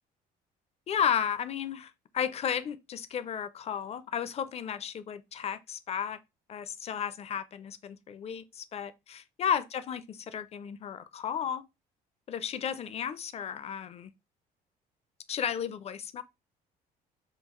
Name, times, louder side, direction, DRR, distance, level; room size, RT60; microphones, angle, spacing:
voice 1, 0.9-6.2 6.5-11.6 12.3-14.1 15.3-16.2, left 8 dB, 40° left, 0.4 m, -33 dB
3.8 x 2.3 x 4.3 m
cardioid pair, 110°, 17 cm